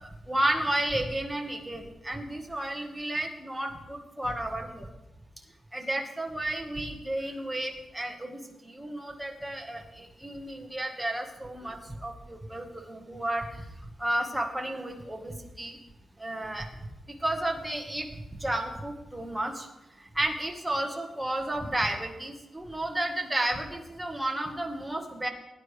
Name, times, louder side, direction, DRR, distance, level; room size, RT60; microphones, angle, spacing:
voice 1, 0.3-4.8 5.7-8.4 8.6-13.4 14.0-15.3 15.6-15.8 16.2-16.7 17.2-18.1 18.4-19.7 20.1-25.3, right 1 dB, 5° right, 1 dB, 1.5 m, -32 dB
19.0 x 9.7 x 3.4 m, 0.98 s
wide cardioid pair, 120°, 0 cm